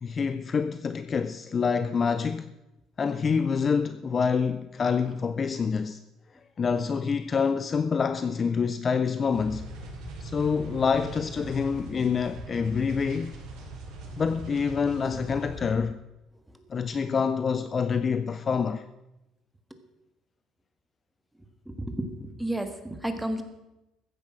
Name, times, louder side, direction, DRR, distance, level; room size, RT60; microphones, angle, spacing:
voice 1, 0.0-2.5 3.0-6.0 6.6-9.7 10.2-13.3 14.2-16.0 16.7-18.8, left 5 dB, 25° left, 0.5 m, -27 dB
sound 1, 9.3-15.8, right 1 dB, 65° right, 5.5 m, -41 dB
voice 2, 21.7-23.4, right 1 dB, 5° right, 1.5 m, -32 dB
15.0 x 10.0 x 6.2 m
cardioid pair, 150°, 0 cm